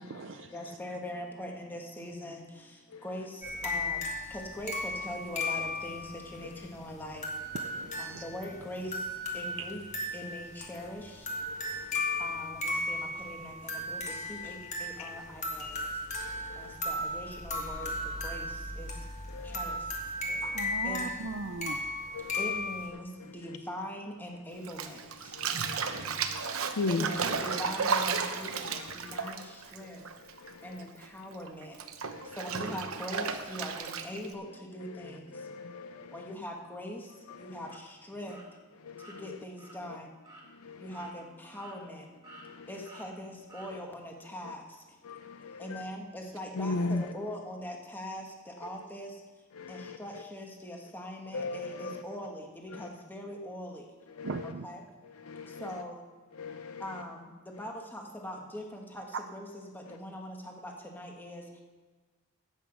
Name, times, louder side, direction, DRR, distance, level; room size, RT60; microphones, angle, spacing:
voice 1, 0.0-0.5 7.5-8.2 9.6-9.7 20.4-21.9 54.2-54.7, right 4 dB, 60° right, 7 dB, 0.5 m, -39 dB
voice 2, 0.5-7.5 8.0-9.8 10.1-11.9 12.2-19.1 19.4-20.1 20.8-21.2 21.8-21.9 22.2-30.1 30.6-31.8 32.2-35.6 35.9-38.6 39.0-40.1 40.8-42.1 42.4-45.0 45.6-49.2 49.7-53.9 54.4-54.8 55.5-56.0 56.8-61.6, equal, 10° left, 1 dB, 1.4 m, -42 dB
sound 1, 3.4-22.9, left 2 dB, 35° left, 1.8 m, -36 dB
voice 3, 11.5-12.2 15.0-15.1 15.7-16.8 19.3-19.7 20.3-20.4 22.1-22.4 25.3-27.1 28.7-29.3 30.4-30.7 32.1-32.4 34.9-36.3 37.3-37.5 38.8-39.4 40.6-40.9 42.4-42.7 45.0-45.8 46.6-47.0 49.6-50.0 51.3-52.0 52.7-52.9 54.2-54.3 55.2-55.7 56.4-56.8, left 3 dB, 85° left, 8 dB, 0.6 m, -38 dB
Bathtub (filling or washing), 24.6-30.5 30.8-34.3, right 5 dB, 80° right, 0.9 m, -33 dB
sound 2, 37.7-37.8 38.3-38.5 39.0-39.2 39.6-39.8 40.2-40.5 40.9-41.1 41.5-42.0 42.2-42.5 42.8-43.1 43.5-43.7, right 2 dB, 15° right, 2.1 m, -51 dB
11.5 x 8.2 x 6.0 m, 1.3 s
head